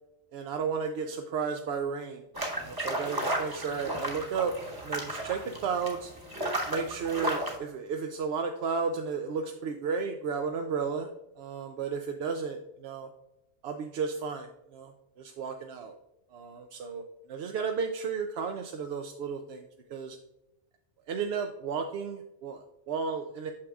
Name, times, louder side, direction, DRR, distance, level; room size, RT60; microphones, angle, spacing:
voice 1, 0.3-2.2 2.6-4.5 4.8-6.1 6.7-11.1 11.4-13.1 13.6-16.0 16.3-17.0 17.3-20.2 21.1-23.5, right 5 dB, 65° right, 4 dB, 0.7 m, -33 dB
sound 1, 2.3-7.6, right 1 dB, 20° right, 1.0 m, -34 dB
8.5 x 6.2 x 2.3 m, 0.93 s
omnidirectional pair, 1.2 m